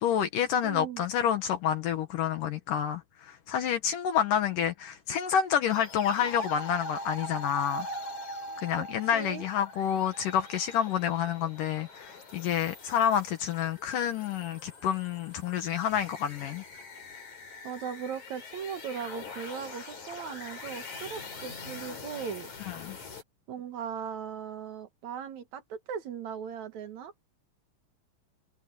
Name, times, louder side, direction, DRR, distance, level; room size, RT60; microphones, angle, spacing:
voice 1, 0.0-7.9 8.6-16.6 22.7-23.0, left 9 dB, 70° left, 2.7 m, -29 dB
voice 2, 0.6-1.0 8.8-8.9 9.1-9.4 17.6-22.5 23.5-27.1, right 7 dB, 60° right, 2.6 m, -38 dB
sound 1, 5.7-23.2, left 2 dB, 55° left, 6.0 m, -42 dB
omnidirectional pair, 4.1 m